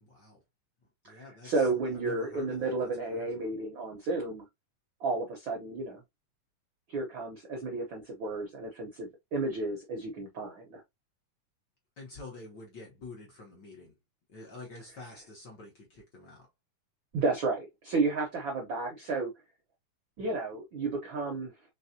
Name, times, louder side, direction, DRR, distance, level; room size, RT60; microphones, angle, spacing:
voice 1, 0.0-0.4 1.0-3.5 12.0-13.9 14.3-16.5, left 3 dB, 75° left, 0.9 m, -48 dB
voice 2, 1.0-4.5 5.0-6.0 6.9-10.8 17.1-19.3 20.2-21.5, right 3 dB, 75° right, 1.1 m, -32 dB
4.6 x 3.4 x 2.8 m
omnidirectional pair, 3.6 m